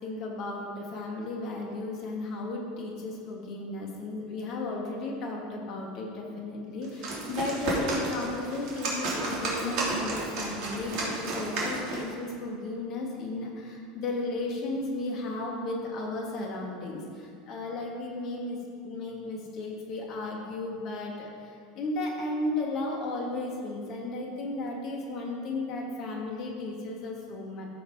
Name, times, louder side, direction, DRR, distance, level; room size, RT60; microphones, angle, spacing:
voice 1, 0.0-18.6 18.8-27.6, left 2 dB, 45° left, -1 dB, 2.7 m, -34 dB
sound 1, 6.8-12.1, right 2 dB, 55° right, 3.0 m, -32 dB
14.0 x 7.5 x 5.1 m, 2.3 s
figure-of-eight pair, 75°, 0 cm